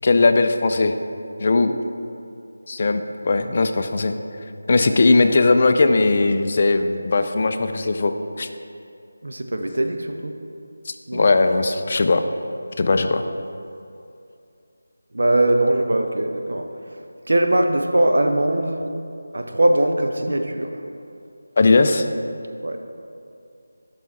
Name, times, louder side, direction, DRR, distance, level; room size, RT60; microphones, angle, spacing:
voice 1, 0.0-0.9 1.4-1.8 2.7-4.1 4.7-8.5 10.9-12.2 12.8-13.2 21.6-22.1, left 3 dB, 40° left, 8 dB, 0.4 m, -18 dB
voice 2, 9.2-10.3 11.1-11.3 15.1-16.7 17.3-18.8 19.3-20.7 22.6-22.8, right 1 dB, 75° right, 5 dB, 0.6 m, -21 dB
6.1 x 5.7 x 4.1 m, 2.5 s
figure-of-eight pair, 165°, 0 cm